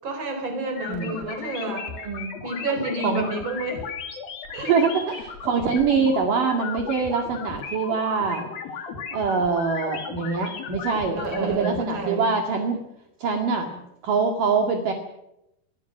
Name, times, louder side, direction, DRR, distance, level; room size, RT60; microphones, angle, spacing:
voice 1, 0.0-1.9 2.4-3.9 4.5-4.8 11.2-12.3, right 2 dB, 30° right, 5 dB, 5.2 m, -30 dB
sound 1, 0.8-11.8, left 6 dB, 60° left, 4.3 m, -36 dB
voice 2, 0.9-1.3 1.9-2.3 3.0-3.3 4.5-8.5 9.1-12.8 13.2-13.7 14.0-14.9, right 5 dB, 55° right, 3 dB, 3.7 m, -24 dB
29.0 x 22.5 x 6.1 m, 0.87 s
omnidirectional pair, 4.8 m